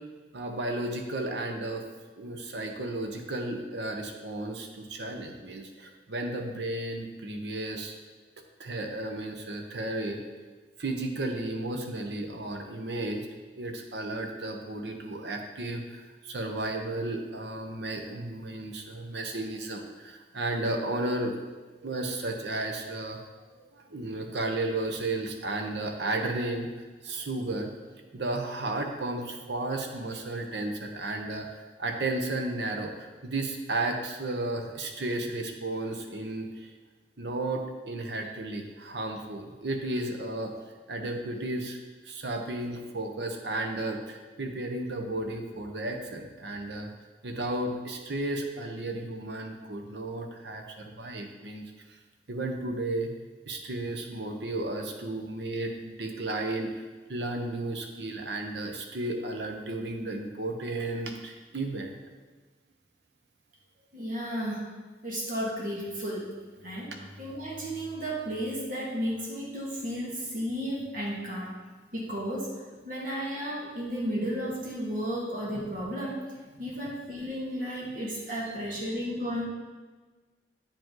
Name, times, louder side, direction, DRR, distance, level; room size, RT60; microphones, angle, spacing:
voice 1, 0.3-1.8 2.2-8.0 8.6-10.2 10.8-13.2 13.6-21.3 21.8-23.2 23.7-27.7 28.1-32.9 33.2-36.7 37.2-40.5 40.9-41.8 42.0-46.9 47.2-51.7 52.3-53.1 53.5-61.9, right 2 dB, 75° right, 3 dB, 0.9 m, -33 dB
voice 2, 63.9-64.7 65.0-71.6 71.9-76.2 76.6-79.5, equal, 50° right, -4 dB, 1.8 m, -33 dB
8.7 x 5.3 x 3.8 m, 1.3 s
head